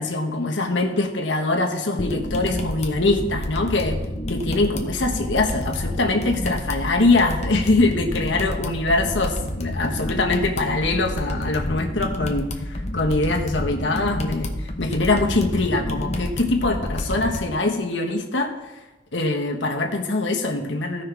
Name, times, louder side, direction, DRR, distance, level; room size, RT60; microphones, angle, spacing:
voice 1, 0.0-4.0 4.3-18.5 19.1-21.0, left 2 dB, 80° left, 1 dB, 1.4 m, -23 dB
sound 1, 2.0-17.4, left 1 dB, 40° left, 1.0 m, -29 dB
16.0 x 5.6 x 3.5 m, 1.1 s
head